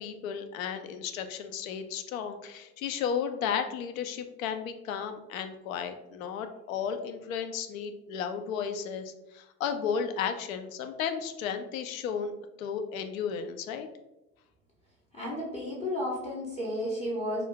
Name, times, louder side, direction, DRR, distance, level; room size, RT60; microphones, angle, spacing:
voice 1, 0.0-12.3 12.6-13.9, left 7 dB, 60° left, 8 dB, 0.5 m, -34 dB
voice 2, 15.1-17.4, left 1 dB, 15° left, -4 dB, 0.7 m, -32 dB
2.5 x 2.3 x 3.6 m, 0.96 s
figure-of-eight pair, 75°, 49 cm